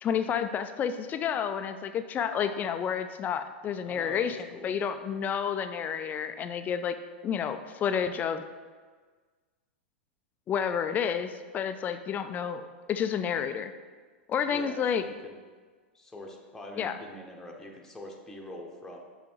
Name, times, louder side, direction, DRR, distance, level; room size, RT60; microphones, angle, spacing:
voice 1, 0.0-4.4 4.6-6.9 7.2-8.4 10.5-12.6 12.9-13.7 14.3-15.0 16.8-16.9, left 7 dB, 30° left, 9 dB, 0.5 m, -30 dB
voice 2, 3.8-4.7 14.5-15.4 15.9-19.0, left 1 dB, 5° left, -1 dB, 1.0 m, -44 dB
6.0 x 5.1 x 4.5 m, 1.5 s
hypercardioid pair, 110°, 6 cm